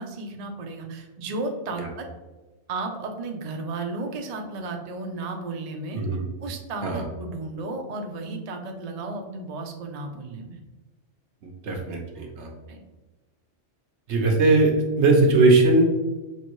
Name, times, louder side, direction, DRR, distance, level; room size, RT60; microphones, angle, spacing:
voice 1, 0.0-2.1 2.7-6.0 6.4-10.6 12.7-12.8, right 3 dB, 50° right, 3 dB, 0.5 m, -34 dB
voice 2, 11.6-12.5 14.1-15.8, right 2 dB, 70° right, 2 dB, 1.1 m, -19 dB
5.6 x 2.6 x 3.0 m, 1.2 s
omnidirectional pair, 1.2 m